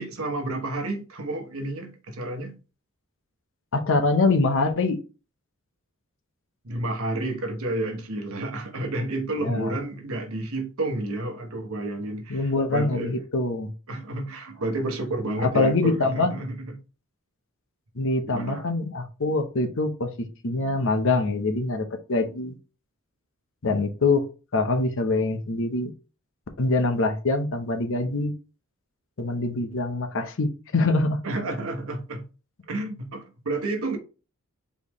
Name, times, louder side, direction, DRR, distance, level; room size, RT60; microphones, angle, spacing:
voice 1, 0.0-2.6 6.6-13.3 13.9-16.8 18.3-18.7 31.2-32.2 32.7-34.0, right 2 dB, 70° right, 1.0 m, -30 dB
voice 2, 3.7-5.0 9.4-9.7 12.3-13.7 15.4-16.3 18.0-22.6 23.6-24.2 24.5-25.9 26.6-28.3 29.2-31.2, left 3 dB, 60° left, 0.7 m, -24 dB
4.2 x 3.5 x 3.0 m
head